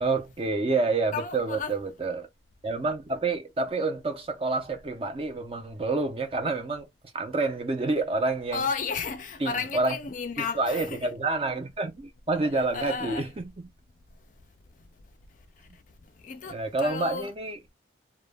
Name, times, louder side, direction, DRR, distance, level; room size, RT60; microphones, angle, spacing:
voice 1, 0.0-2.3 2.6-6.9 7.1-8.6 9.4-10.0 10.4-13.7 16.5-17.6, right 3 dB, 30° right, 0.4 m, -28 dB
voice 2, 1.1-1.7 8.5-11.1 12.7-13.3 16.2-17.3, left 5 dB, 45° left, 0.4 m, -33 dB
2.1 x 2.1 x 3.3 m
head